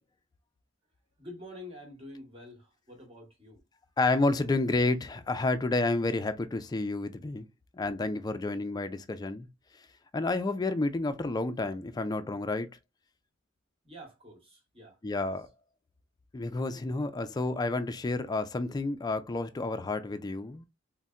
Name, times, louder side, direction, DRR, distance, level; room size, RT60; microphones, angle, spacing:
voice 1, 1.2-3.6 13.8-15.3, left 1 dB, 30° right, 1.2 m, -48 dB
voice 2, 4.0-7.5 7.7-9.5 10.1-12.7 15.0-15.5 16.3-20.6, left 2 dB, 20° left, 0.3 m, -30 dB
3.9 x 2.1 x 2.3 m
head